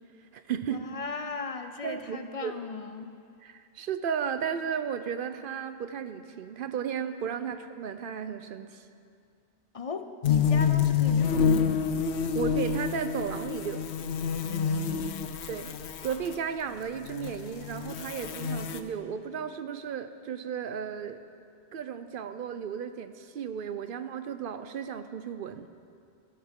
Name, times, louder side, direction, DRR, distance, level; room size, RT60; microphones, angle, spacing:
voice 1, 0.2-0.9 1.8-2.5 3.4-8.9 12.3-13.9 15.5-15.8 16.0-21.2 21.7-25.7, right 7 dB, 60° right, 10 dB, 0.7 m, -34 dB
voice 2, 0.7-3.2 9.7-11.9 14.4-15.3, left 4 dB, 40° left, 8 dB, 0.5 m, -37 dB
sound 1, 10.2-16.4 17.0-18.8, left 7 dB, 80° left, 0.9 m, -28 dB
17.0 x 13.5 x 3.7 m, 2.4 s
omnidirectional pair, 1.1 m